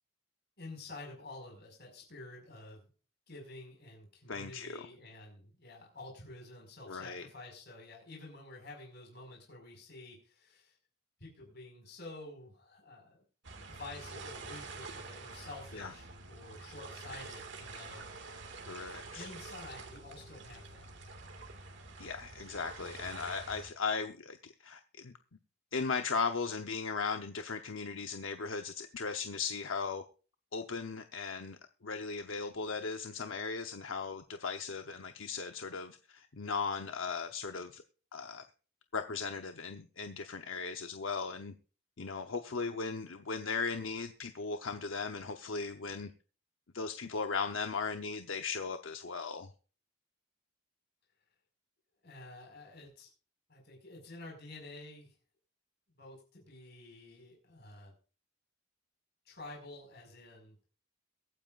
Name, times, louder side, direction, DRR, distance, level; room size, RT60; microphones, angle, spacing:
voice 1, 0.6-2.9 3.3-10.7 11.2-13.2 13.7-18.0 19.1-21.1 52.0-53.1 53.5-55.1 56.0-57.9 59.2-60.5, left 2 dB, 50° left, 0 dB, 5.2 m, -50 dB
voice 2, 4.3-4.8 6.9-7.3 15.7-15.9 18.7-19.3 22.0-25.1 25.7-30.0 30.5-31.6 31.8-37.8 38.1-38.4 38.9-41.5 42.0-46.1 46.7-49.5, left 5 dB, 70° left, 6 dB, 0.8 m, -37 dB
sound 1, 13.4-23.7, right 3 dB, 60° right, 2.0 m, -47 dB
23.0 x 9.1 x 2.5 m, 0.37 s
head